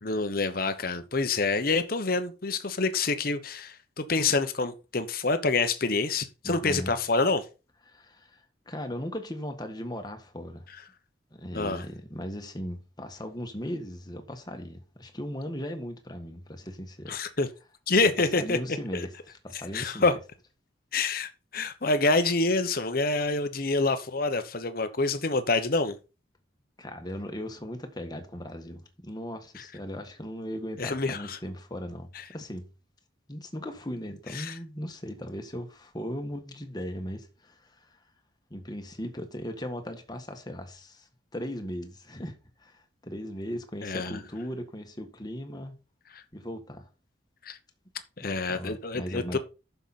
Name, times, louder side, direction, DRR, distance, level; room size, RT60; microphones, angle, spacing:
voice 1, 0.0-7.4 11.5-11.8 17.1-17.5 17.9-18.6 19.7-20.2 20.9-26.0 30.8-31.4 34.3-34.5 43.8-44.2 46.1-46.2 47.4-47.6 48.2-49.4, left 3 dB, 50° left, 1.1 m, -27 dB
voice 2, 6.4-7.0 7.9-10.7 11.3-17.2 18.4-20.2 26.8-32.7 33.3-38.0 38.5-45.8 46.3-46.9 48.2-49.4, equal, 20° left, 1.5 m, -38 dB
10.5 x 6.9 x 4.3 m
head